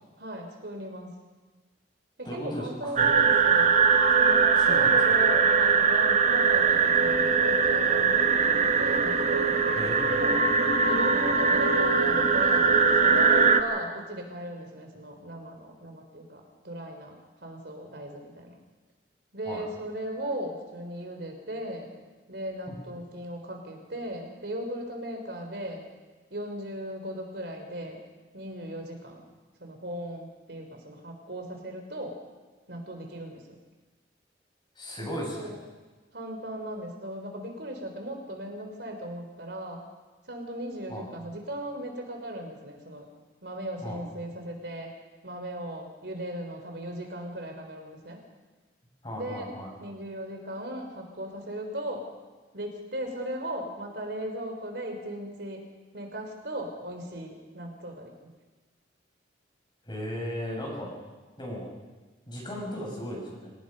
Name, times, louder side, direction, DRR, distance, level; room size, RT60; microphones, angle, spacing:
voice 1, 0.2-1.1 2.2-3.7 4.1-8.1 8.4-9.8 10.1-10.4 10.9-17.1 17.4-18.6 19.3-21.9 22.3-25.8 26.3-28.0 28.3-29.2 29.6-32.2 32.7-33.4 35.0-35.6 36.1-39.8 40.3-43.1 43.4-44.9 45.2-48.2 49.1-49.5 49.8-52.1 52.5-55.7 55.9-58.1, right 1 dB, 65° right, 3 dB, 3.9 m, -37 dB
voice 2, 2.2-3.1 3.5-3.6 4.6-5.0 9.7-10.0 19.5-19.7 22.7-22.8 34.7-35.5 40.9-41.0 43.8-44.0 49.0-49.7 59.8-60.9 61.4-61.7 62.3-63.5, equal, 25° left, -1 dB, 6.5 m, -36 dB
sound 1, 3.0-13.6, right 5 dB, 40° right, 1.4 m, -21 dB
26.0 x 18.5 x 5.4 m, 1.3 s
head